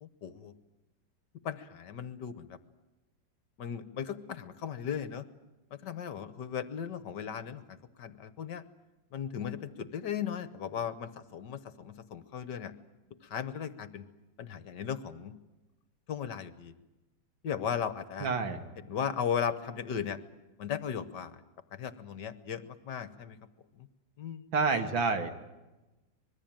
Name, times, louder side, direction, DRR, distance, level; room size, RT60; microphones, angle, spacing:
voice 1, 0.0-0.5 1.4-2.6 3.6-5.2 5.8-7.6 8.0-8.6 9.1-12.7 13.3-14.0 14.4-15.3 16.1-16.7 17.4-18.3 18.8-20.2 20.6-21.4 21.7-23.4 24.2-24.4, left 8 dB, 60° left, 14 dB, 1.6 m, -36 dB
voice 2, 18.2-18.7 24.5-25.4, right 4 dB, 70° right, 7 dB, 2.6 m, -28 dB
25.0 x 21.5 x 8.9 m, 1.1 s
omnidirectional pair, 2.2 m